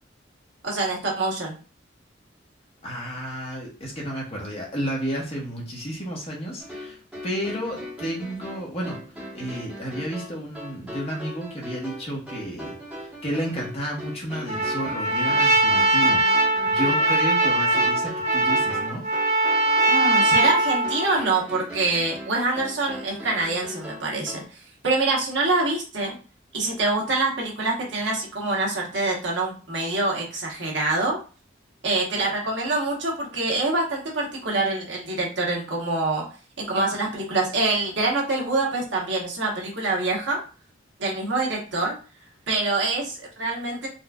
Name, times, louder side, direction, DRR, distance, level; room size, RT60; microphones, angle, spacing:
voice 1, 0.6-1.6 19.9-24.4 24.8-26.1 26.5-31.2 31.8-36.2 36.6-40.4 41.0-42.0 42.5-43.9, right 2 dB, 70° right, -2 dB, 1.1 m, -25 dB
voice 2, 2.8-7.0 7.2-9.0 9.3-19.0, equal, 30° left, -3 dB, 1.0 m, -32 dB
sound 1, 6.6-24.4, left 1 dB, 5° right, 1.2 m, -39 dB
Trumpet, 14.5-21.3, right 2 dB, 35° right, 0.8 m, -21 dB
4.0 x 2.4 x 2.3 m, 0.36 s
head